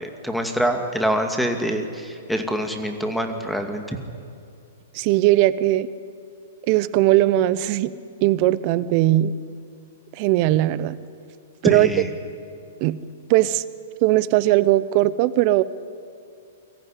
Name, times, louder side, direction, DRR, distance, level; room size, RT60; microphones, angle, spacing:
voice 1, 0.0-4.0 11.6-12.1, equal, ahead, 5 dB, 2.2 m, -25 dB
voice 2, 4.9-5.9 6.7-7.9 8.2-9.3 10.2-11.0 11.6-11.9 12.8-13.0 13.3-13.6 14.0-15.6, right 16 dB, 45° right, 17 dB, 0.9 m, -19 dB
22.5 x 14.5 x 9.9 m, 2.4 s
hypercardioid pair, 120°, 0 cm